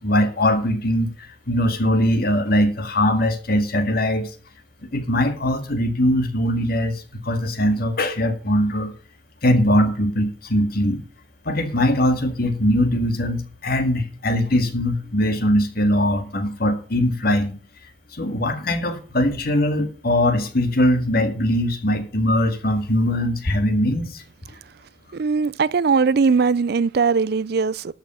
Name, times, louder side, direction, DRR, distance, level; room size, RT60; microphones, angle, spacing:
voice 1, 0.0-4.3 4.9-8.9 9.4-11.0 11.5-17.6 18.1-24.2, left 1 dB, 55° left, 2.0 m, -21 dB
voice 2, 25.1-27.9, right 5 dB, 55° right, 0.4 m, -20 dB
13.0 x 5.8 x 6.9 m
head